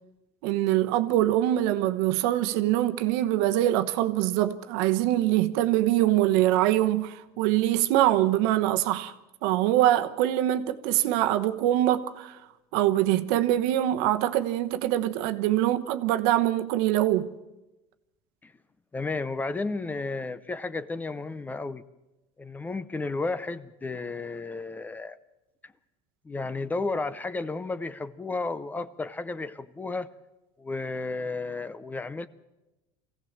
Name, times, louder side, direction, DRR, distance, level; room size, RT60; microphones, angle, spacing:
voice 1, 0.4-9.1 9.4-12.4 12.7-17.3, right 13 dB, 80° right, 1.1 m, -24 dB
voice 2, 18.9-21.8 22.4-25.2 26.2-30.1 30.6-32.3, left 3 dB, 15° left, 0.6 m, -32 dB
24.0 x 16.5 x 7.4 m
cardioid pair, 140°, 12 cm